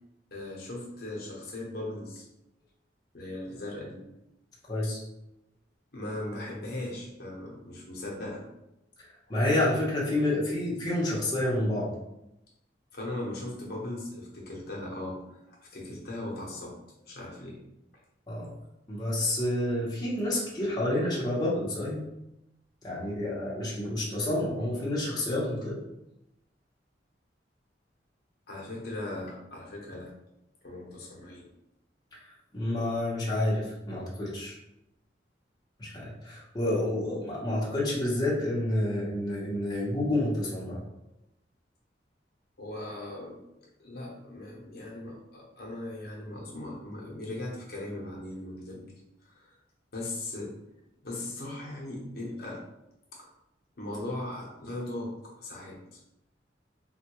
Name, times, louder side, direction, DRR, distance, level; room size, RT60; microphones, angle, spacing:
voice 1, 0.3-2.3 3.1-4.1 5.9-8.4 12.9-16.8 17.1-17.6 28.5-30.1 30.6-31.5 42.6-43.4 43.8-48.9 49.2-49.5 49.9-50.6 51.0-52.6 53.1-53.3 53.8-56.0, left 1 dB, 55° left, -3 dB, 0.8 m, -38 dB
voice 2, 4.7-5.0 9.3-11.9 18.3-18.5 18.9-22.0 22.8-25.8 32.2-34.6 35.8-40.8, left 1 dB, 20° left, -6 dB, 0.8 m, -29 dB
3.7 x 2.3 x 2.9 m, 0.87 s
head